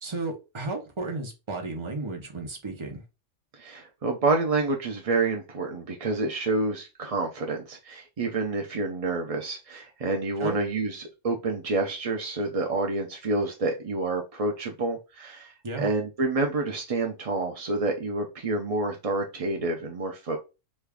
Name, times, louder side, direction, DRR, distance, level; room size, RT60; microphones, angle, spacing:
voice 1, 0.0-3.0 10.4-10.6 15.6-15.9, right 2 dB, 30° right, 0.7 m, -33 dB
voice 2, 3.5-20.4, right 3 dB, 60° right, 0.3 m, -28 dB
3.1 x 2.4 x 3.3 m
omnidirectional pair, 1.3 m